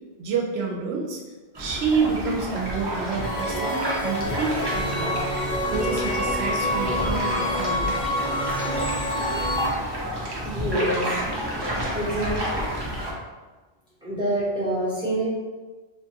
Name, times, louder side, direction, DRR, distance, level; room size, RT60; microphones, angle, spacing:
voice 1, 0.2-1.2 1.6-5.2 5.7-8.0, right 5 dB, 70° right, 0 dB, 0.8 m, -28 dB
sound 1, 1.5-13.1, equal, 35° right, 0.4 m, -30 dB
sound 2, 3.2-9.7, equal, 35° left, 0.6 m, -27 dB
voice 2, 10.4-11.1 11.9-12.7 14.0-15.3, right 1 dB, 5° right, -11 dB, 1.0 m, -27 dB
2.9 x 2.3 x 2.8 m, 1.3 s
omnidirectional pair, 1.2 m